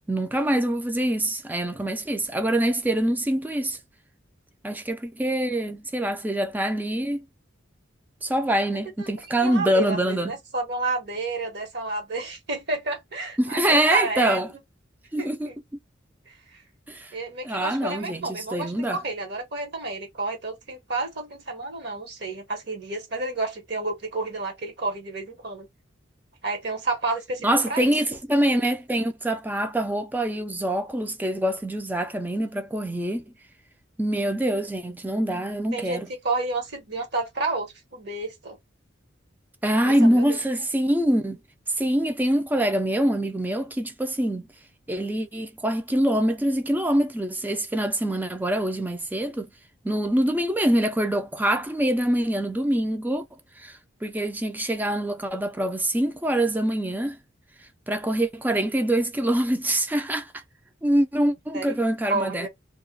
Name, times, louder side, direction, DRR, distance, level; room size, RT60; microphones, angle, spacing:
voice 1, 0.1-3.8 4.6-7.2 8.2-10.3 13.4-14.5 15.1-15.5 16.9-17.1 17.4-19.0 27.4-33.2 34.0-36.1 39.6-41.4 41.8-44.5 44.9-49.5 49.8-53.3 53.6-57.2 57.9-60.3 60.8-62.5, right 1 dB, 10° right, 0.4 m, -24 dB
voice 2, 9.4-14.4 15.2-15.5 16.3-16.6 17.1-25.7 26.4-27.9 35.7-36.0 36.2-38.6 39.8-40.4 61.5-61.8 62.1-62.5, right 3 dB, 60° right, 1.2 m, -30 dB
2.3 x 2.2 x 3.8 m
head